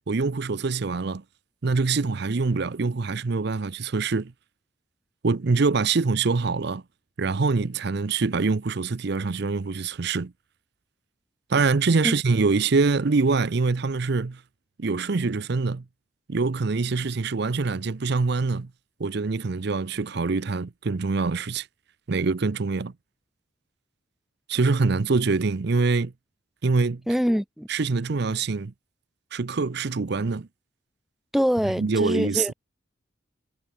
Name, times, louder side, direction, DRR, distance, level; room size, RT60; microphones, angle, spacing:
voice 1, 0.1-1.2 1.6-4.3 5.2-6.8 7.2-10.3 11.5-14.4 14.8-15.8 16.3-18.7 19.0-21.7 22.1-22.9 24.5-26.1 26.6-27.0 27.7-28.7 29.3-30.5 31.8-32.5, right 4 dB, 55° right, 0.6 m, -24 dB
voice 2, 27.1-27.7 31.3-32.5, equal, ahead, 0.9 m, -24 dB
head